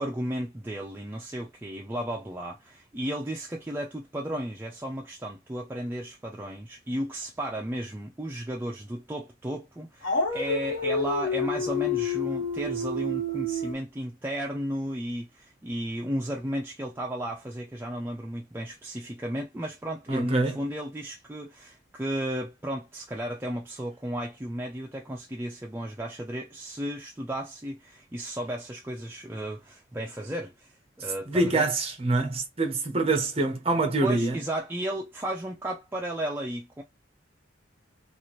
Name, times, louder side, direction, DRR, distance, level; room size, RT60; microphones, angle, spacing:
voice 1, 0.0-31.7 34.0-36.8, right 1 dB, 10° right, 0.4 m, -34 dB
Dog, 10.0-13.7, left 2 dB, 70° left, 1.2 m, -28 dB
voice 2, 20.1-20.6 31.3-34.4, right 2 dB, 30° right, 0.7 m, -25 dB
2.8 x 2.4 x 2.9 m
head